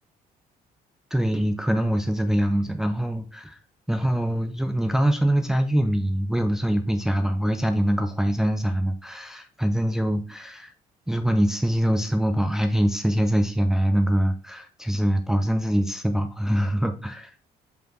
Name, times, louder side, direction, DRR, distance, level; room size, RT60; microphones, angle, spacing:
voice 1, 1.1-3.6 3.9-10.7 11.1-17.2, equal, 5° right, 6 dB, 0.5 m, -24 dB
5.5 x 4.5 x 3.8 m, 0.34 s
cardioid pair, 150°, 16 cm